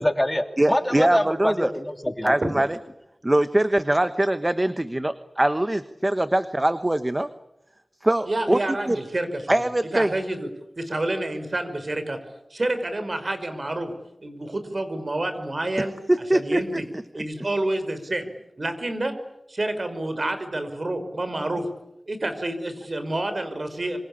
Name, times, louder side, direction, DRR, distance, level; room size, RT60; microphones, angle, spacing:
voice 1, 0.0-2.3, left 1 dB, 15° left, 7 dB, 2.7 m, -25 dB
voice 2, 0.6-1.7 2.2-2.8 3.2-7.3 8.0-8.6 8.9-9.0 9.5-10.1 15.8-16.8, right 1 dB, 25° right, 11 dB, 1.2 m, -22 dB
voice 3, 8.2-9.5 9.9-10.5 10.8-12.2 12.5-13.9 14.2-15.9 16.3-16.9 17.1-18.3 18.6-19.1 19.5-21.7 22.1-24.0, right 1 dB, 50° right, 9 dB, 5.2 m, -28 dB
26.5 x 25.5 x 8.7 m, 0.88 s
wide cardioid pair, 60°, 0 cm